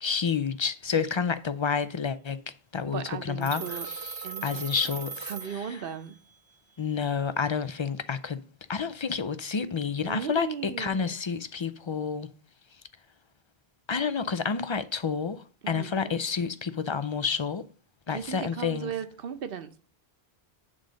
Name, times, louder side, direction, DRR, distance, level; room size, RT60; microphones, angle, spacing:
voice 1, 0.0-2.4 2.7-5.8 6.8-8.4 8.7-12.3 13.9-17.6 18.1-18.9, left 6 dB, 45° left, 0.4 m, -29 dB
voice 2, 2.9-3.9 4.2-4.6 5.2-6.2 10.0-11.2 15.6-16.1 18.1-19.8, right 8 dB, 65° right, 1.0 m, -37 dB
Telephone, 3.4-6.2, right 5 dB, 30° right, 0.5 m, -39 dB
8.7 x 3.9 x 6.3 m
omnidirectional pair, 1.0 m